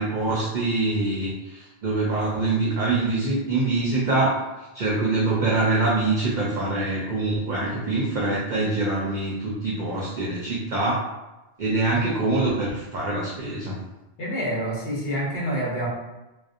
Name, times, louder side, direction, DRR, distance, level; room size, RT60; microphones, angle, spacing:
voice 1, 0.0-4.4 4.7-11.0 11.6-13.7, right 2 dB, 55° right, -5 dB, 0.5 m, -24 dB
voice 2, 14.2-15.9, equal, 65° left, -5 dB, 1.0 m, -27 dB
2.6 x 2.0 x 2.4 m, 1.0 s
omnidirectional pair, 1.1 m